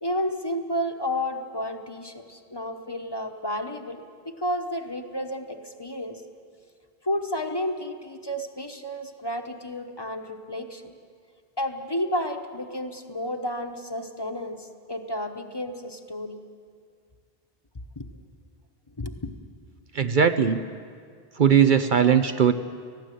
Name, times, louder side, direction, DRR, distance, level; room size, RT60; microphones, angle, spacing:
voice 1, 0.0-6.2 7.0-10.9 11.6-16.4 18.0-18.1 19.0-19.3, left 1 dB, 25° left, 5 dB, 1.1 m, -31 dB
voice 2, 19.9-20.6 21.4-22.5, right 7 dB, 55° right, 9 dB, 0.8 m, -19 dB
19.0 x 15.5 x 9.2 m, 2.1 s
omnidirectional pair, 1.0 m